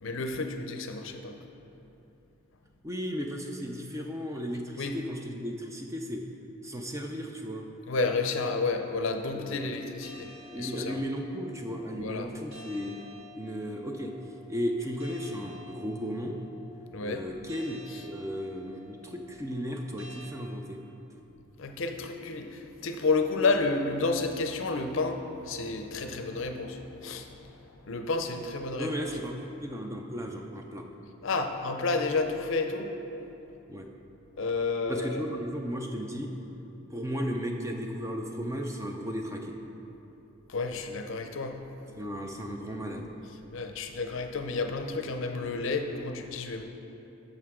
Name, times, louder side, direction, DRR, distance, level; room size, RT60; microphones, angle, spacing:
voice 1, 0.0-1.4 4.8-5.0 7.9-10.3 10.5-11.0 12.0-12.3 16.9-17.2 21.6-27.3 27.9-28.9 31.2-32.9 33.2-33.3 34.4-35.2 40.5-41.6 43.5-46.6, left 3 dB, 60° left, 5 dB, 0.6 m, -30 dB
voice 2, 2.8-6.2 6.6-7.7 9.3-9.7 10.5-13.0 13.4-14.1 14.5-16.4 17.0-20.8 28.8-29.4 29.6-30.9 33.7-33.9 34.9-36.3 36.9-39.6 42.0-43.1, equal, 15° right, 2 dB, 0.4 m, -35 dB
sound 1, 10.0-20.3, left 1 dB, 90° right, 1.9 m, -52 dB
10.5 x 6.5 x 3.7 m, 3.0 s
head